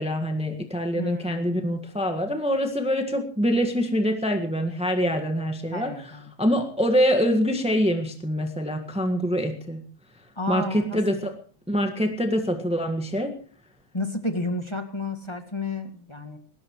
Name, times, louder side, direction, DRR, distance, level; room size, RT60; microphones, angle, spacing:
voice 1, 0.0-5.9 6.4-9.8 10.5-11.3 11.7-13.3, equal, 5° right, 5 dB, 0.6 m, -25 dB
voice 2, 0.9-1.6 5.7-6.3 10.3-11.0 13.9-16.4, left 2 dB, 15° left, 6 dB, 1.3 m, -31 dB
21.0 x 18.0 x 3.1 m, 0.42 s
omnidirectional pair, 3.4 m